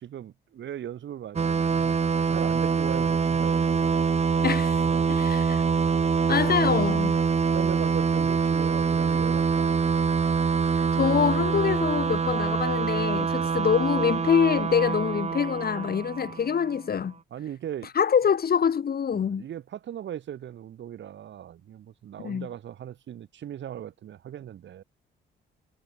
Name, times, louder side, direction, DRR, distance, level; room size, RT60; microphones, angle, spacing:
voice 1, 0.0-4.1 4.8-5.1 7.5-10.0 13.3-13.6 17.3-17.9 19.1-24.8, right 10 dB, 65° right, 5.6 m, -39 dB
sound 1, 1.4-16.7, right 5 dB, 35° right, 1.2 m, -25 dB
voice 2, 4.4-4.8 5.1-5.6 6.3-7.2 10.9-17.1 17.9-19.4 22.2-22.5, left 7 dB, 50° left, 6.3 m, -25 dB
cardioid pair, 90°, 20 cm